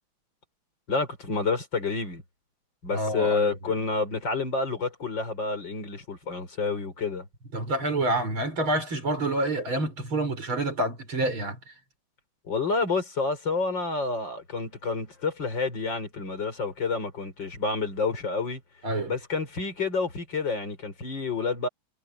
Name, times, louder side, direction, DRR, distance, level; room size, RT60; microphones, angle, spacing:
voice 1, 0.9-2.2 2.8-7.3 12.5-18.6 19.1-21.7, left 4 dB, 65° left, 5.3 m, -29 dB
voice 2, 2.9-3.5 7.5-11.6 18.8-19.1, right 1 dB, 90° right, 7.6 m, -27 dB
omnidirectional pair, 2.2 m